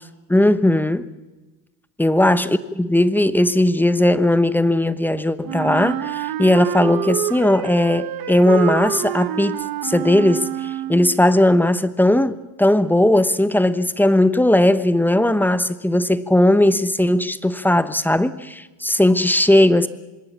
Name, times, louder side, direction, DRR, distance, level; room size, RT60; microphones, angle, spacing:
voice 1, 0.3-1.1 2.0-19.9, left 1 dB, 5° left, 14 dB, 0.9 m, -17 dB
Wind instrument woodwind instrument, 5.4-11.2, right 12 dB, 55° right, 1.2 m, -27 dB
26.5 x 21.0 x 7.4 m, 1.1 s
cardioid pair, 120°, 43 cm